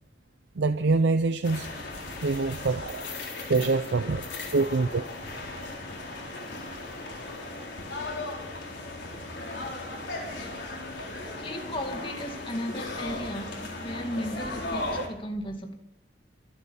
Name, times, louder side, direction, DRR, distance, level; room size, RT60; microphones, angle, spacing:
voice 1, 0.6-1.7 2.2-3.1 3.5-4.2 4.5-5.0, right 3 dB, 80° right, 0.6 m, -25 dB
sound 1, 1.4-15.1, left 2 dB, 80° left, 3.9 m, -37 dB
voice 2, 3.9-5.0 5.9-6.1 11.4-15.7, equal, 30° left, 2.2 m, -36 dB
24.5 x 8.2 x 5.6 m
head